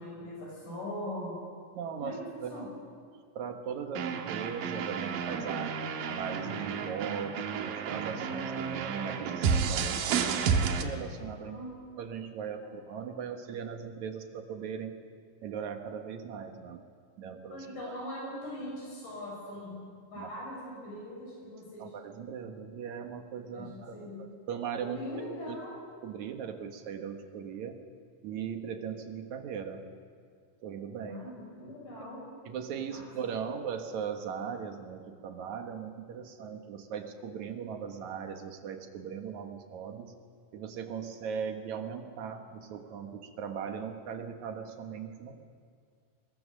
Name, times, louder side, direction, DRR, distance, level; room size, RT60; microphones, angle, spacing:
voice 1, 0.0-1.3 2.0-2.7 11.4-11.8 17.3-19.8 20.1-21.9 23.5-24.2 24.8-25.8 31.0-32.2 32.9-33.0, left 1 dB, 70° left, -3 dB, 8.2 m, -41 dB
voice 2, 1.7-2.7 3.4-5.8 6.1-11.6 12.0-14.9 15.4-16.8 17.2-17.9 20.2-20.3 21.8-25.0 25.5-25.6 26.0-27.8 28.2-29.9 30.6-31.2 32.5-40.1 40.5-45.4, right 7 dB, 65° right, 6 dB, 2.5 m, -39 dB
sound 1, 4.0-10.8, right 6 dB, 85° right, 2.9 m, -31 dB
21.5 x 21.5 x 6.4 m, 2.2 s
omnidirectional pair, 3.9 m